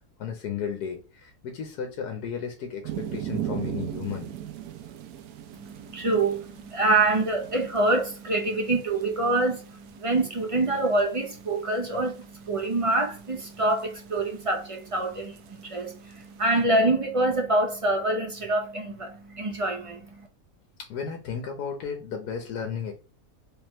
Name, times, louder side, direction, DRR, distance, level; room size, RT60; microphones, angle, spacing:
voice 1, 0.2-4.3 20.9-22.9, left 7 dB, 85° left, 1.4 m, -34 dB
sound 1, 2.8-16.6, right 11 dB, 75° right, 1.0 m, -40 dB
voice 2, 5.5-20.3, right 2 dB, 50° right, 0.4 m, -26 dB
3.5 x 3.3 x 3.0 m
omnidirectional pair, 1.6 m